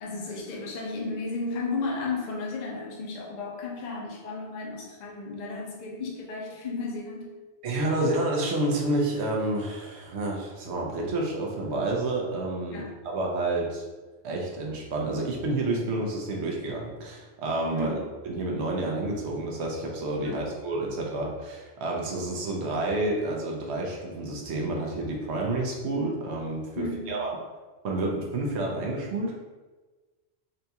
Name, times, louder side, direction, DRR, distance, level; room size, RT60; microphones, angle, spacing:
voice 1, 0.0-7.3 8.0-8.1 12.7-12.9 17.7-18.0 20.2-20.5 26.8-27.3, left 3 dB, 50° left, -2 dB, 0.6 m, -34 dB
voice 2, 7.6-13.8 14.2-18.0 18.2-27.3 27.8-29.4, right 2 dB, 80° right, -1 dB, 1.0 m, -29 dB
3.9 x 2.3 x 2.7 m, 1.3 s
omnidirectional pair, 1.1 m